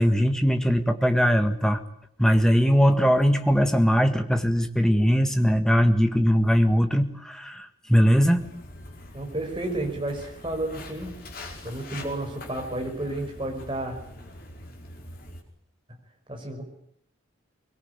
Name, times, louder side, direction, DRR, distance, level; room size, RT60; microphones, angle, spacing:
voice 1, 0.0-1.8 2.2-8.4, equal, 5° left, 7 dB, 1.7 m, -20 dB
Walk footsteps, 8.4-15.4, left 1 dB, 45° left, 5.2 m, -43 dB
voice 2, 9.1-11.1 11.6-14.0 16.3-16.6, right 1 dB, 25° right, 2 dB, 5.5 m, -31 dB
24.0 x 21.5 x 9.7 m, 0.68 s
head